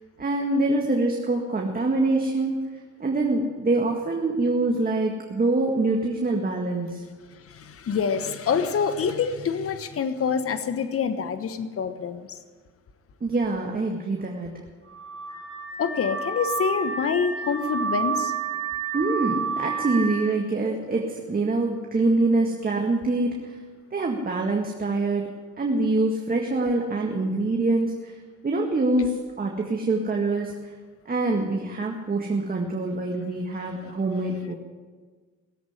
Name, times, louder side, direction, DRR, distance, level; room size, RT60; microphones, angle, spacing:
voice 1, 0.2-2.6 3.0-7.0 13.2-14.6 18.9-23.6 23.9-28.2 28.4-30.5 31.1-34.5, right 2 dB, 30° right, 1 dB, 1.9 m, -25 dB
voice 2, 7.4-12.4 15.8-18.3, left 6 dB, 50° left, 9 dB, 1.2 m, -26 dB
Car / Alarm, 14.9-20.3, right 5 dB, 15° left, 5.1 m, -30 dB
18.5 x 8.0 x 9.8 m, 1.5 s
cardioid pair, 90°, 30 cm